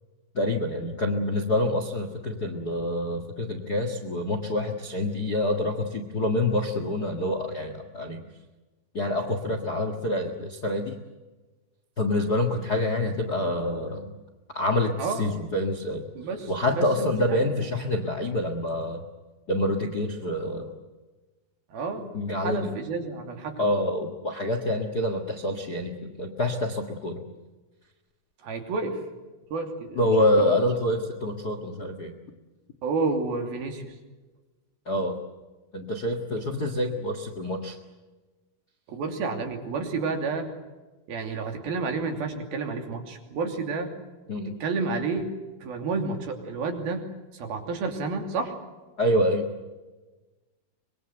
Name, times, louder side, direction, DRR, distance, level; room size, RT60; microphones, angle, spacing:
voice 1, 0.3-8.2 8.9-11.0 12.0-14.1 14.5-16.0 16.5-19.0 19.5-20.7 22.1-22.7 23.6-27.2 29.9-32.1 34.8-35.2 35.7-37.8 44.3-44.6 49.0-49.5, left 1 dB, 90° left, 6 dB, 0.8 m, -27 dB
voice 2, 16.2-17.4 21.7-23.7 28.4-29.0 29.5-30.0 30.4-30.6 32.8-33.9 38.9-40.5 41.1-43.9 44.5-45.3 45.6-47.0 47.3-48.6, right 4 dB, 60° right, 4 dB, 4.5 m, -30 dB
25.0 x 22.5 x 7.9 m, 1.2 s
omnidirectional pair, 5.0 m